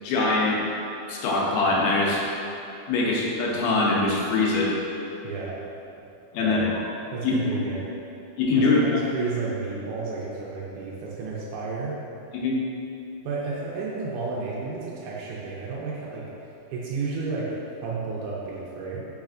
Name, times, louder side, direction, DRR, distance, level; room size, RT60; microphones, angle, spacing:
voice 1, 0.0-0.6 1.1-2.2 2.9-4.7 6.3-6.8 7.2-7.6 8.4-8.8 12.3-12.6, left 3 dB, 80° left, -3 dB, 1.8 m, -23 dB
voice 2, 5.2-5.6 6.4-6.7 7.1-7.8 8.6-8.8 9.1-12.0 13.2-16.2 16.7-17.6 17.8-19.1, right 4 dB, 80° right, -5 dB, 2.0 m, -32 dB
4.1 x 4.0 x 2.4 m, 2.8 s
omnidirectional pair, 3.6 m